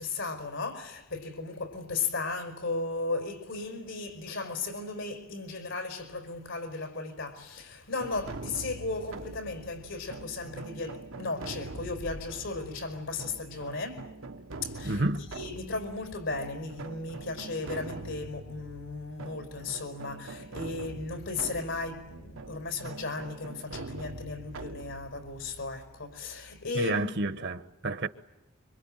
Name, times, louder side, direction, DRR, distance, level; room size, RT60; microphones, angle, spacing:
voice 1, 0.0-14.1 14.6-15.0 15.4-27.4, left 3 dB, 80° left, 5.0 m, -36 dB
sound 1, 8.0-26.7, right 2 dB, 85° right, 1.1 m, -44 dB
voice 2, 14.8-15.2 26.7-28.1, right 2 dB, 60° right, 1.0 m, -29 dB
26.0 x 24.5 x 9.0 m
head